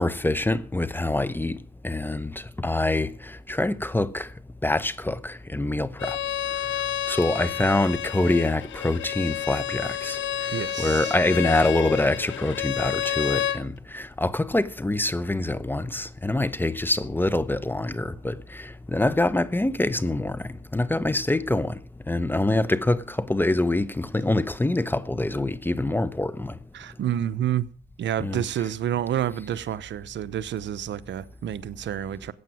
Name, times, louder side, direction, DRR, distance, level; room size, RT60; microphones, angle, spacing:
voice 1, 0.0-1.6 1.8-4.3 4.6-6.2 7.1-26.6 28.2-28.4, left 2 dB, 10° left, 0.9 m, -25 dB
Bowed string instrument, 6.0-13.6, left 11 dB, 70° left, 1.2 m, -30 dB
voice 2, 10.5-11.2 26.7-27.7 28.0-32.3, right 10 dB, 65° right, 0.9 m, -29 dB
15.0 x 8.6 x 7.7 m
cardioid pair, 90°, 20 cm